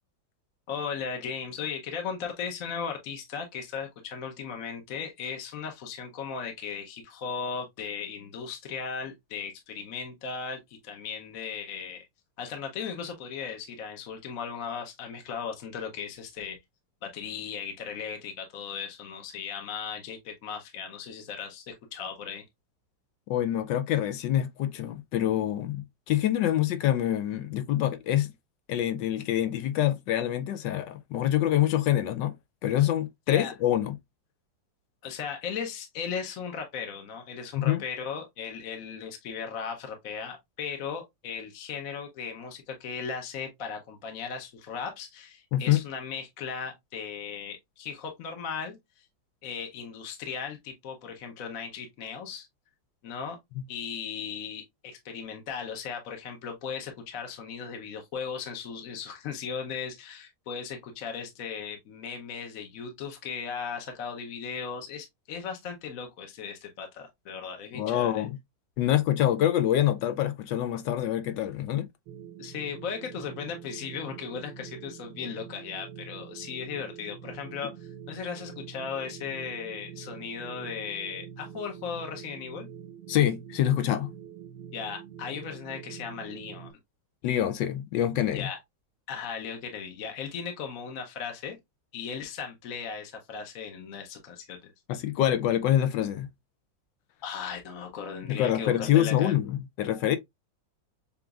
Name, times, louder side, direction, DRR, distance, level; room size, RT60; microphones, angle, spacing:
voice 1, 0.7-12.0 12.4-16.6 17.0-22.4 33.3-33.5 35.0-49.1 49.4-52.5 53.0-53.4 53.7-68.2 72.4-82.7 84.7-86.7 88.3-88.6 89.1-91.6 91.9-94.7 97.2-99.3, left 6 dB, 55° left, 1.1 m, -37 dB
voice 2, 23.3-28.3 28.7-32.3 32.6-34.0 37.5-37.8 45.5-45.8 67.7-68.4 68.8-71.9 83.1-84.1 87.2-88.5 94.9-96.3 98.2-100.2, left 12 dB, 80° left, 1.2 m, -26 dB
sound 1, 72.1-86.7, right 9 dB, 70° right, 1.2 m, -45 dB
6.8 x 2.5 x 2.4 m
omnidirectional pair, 2.0 m